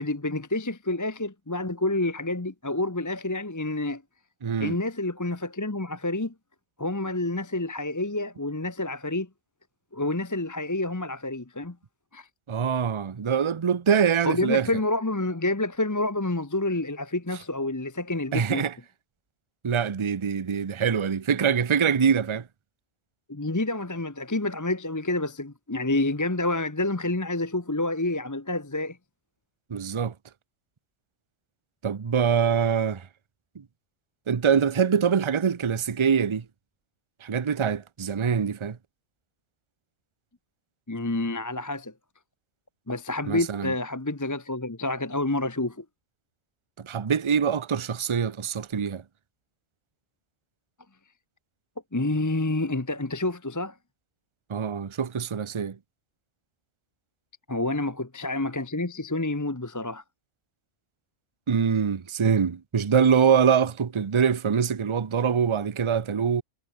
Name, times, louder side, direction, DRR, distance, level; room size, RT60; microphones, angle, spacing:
voice 1, 0.0-4.0 4.6-6.3 6.8-9.3 9.9-11.8 12.1-12.3 14.2-18.7 23.3-29.0 40.9-41.9 42.9-45.8 51.9-53.7 57.5-60.0, left 2 dB, 15° left, 0.9 m, -28 dB
voice 2, 4.4-4.8 12.5-14.7 18.3-18.7 19.6-22.5 29.7-30.1 31.8-33.1 33.6-33.7 34.3-36.4 37.2-38.8 43.3-43.7 46.8-49.0 54.5-55.8 61.5-66.4, right 7 dB, 35° right, 0.5 m, -24 dB
omnidirectional pair, 1.5 m